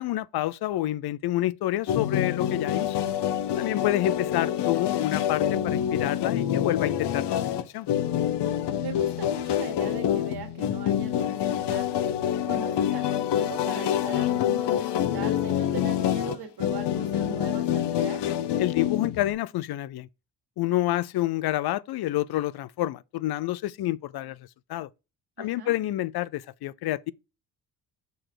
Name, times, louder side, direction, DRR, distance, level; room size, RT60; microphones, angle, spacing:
voice 1, 0.0-3.0 3.6-7.9 18.6-20.1 20.6-24.4 24.7-24.9 25.4-27.1, left 15 dB, 70° left, 0.5 m, -28 dB
sound 1, 1.9-19.3, left 10 dB, 90° left, 0.8 m, -26 dB
voice 2, 8.8-12.1 12.5-18.2 25.4-25.7, right 6 dB, 65° right, 2.0 m, -40 dB
6.8 x 3.9 x 4.7 m
cardioid pair, 105°, 40 cm